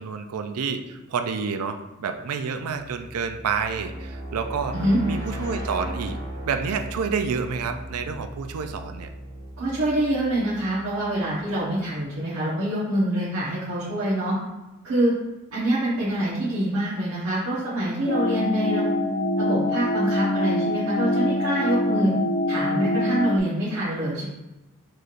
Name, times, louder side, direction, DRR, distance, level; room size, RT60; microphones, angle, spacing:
voice 1, 0.0-4.8 5.0-6.2 6.4-9.1, right 5 dB, 85° right, 7 dB, 0.4 m, -29 dB
sound 1, 2.7-11.5, right 1 dB, 15° left, 0.7 m, -37 dB
voice 2, 9.6-14.4 14.8-15.1 15.5-18.9 19.4-22.1 22.5-24.2, right 1 dB, 70° right, -10 dB, 1.0 m, -25 dB
sound 2, 18.1-23.4, left 1 dB, 45° left, 0.4 m, -24 dB
4.7 x 3.0 x 2.5 m, 1.0 s
head